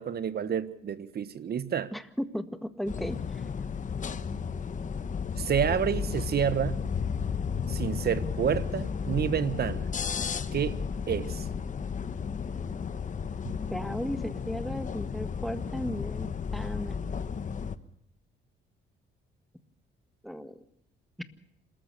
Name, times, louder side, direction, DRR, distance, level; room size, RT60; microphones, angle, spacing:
voice 1, 0.0-1.9 5.4-6.8 7.7-9.9 10.5-10.8 11.1-11.4, right 8 dB, 55° right, 1.4 m, -29 dB
voice 2, 1.9-3.2 13.7-17.0 20.2-20.6 21.2-21.3, equal, ahead, 1.6 m, -35 dB
sound 1, 2.9-17.8, left 6 dB, 40° left, 1.1 m, -33 dB
27.5 x 14.0 x 6.8 m
cardioid pair, 90°, 20 cm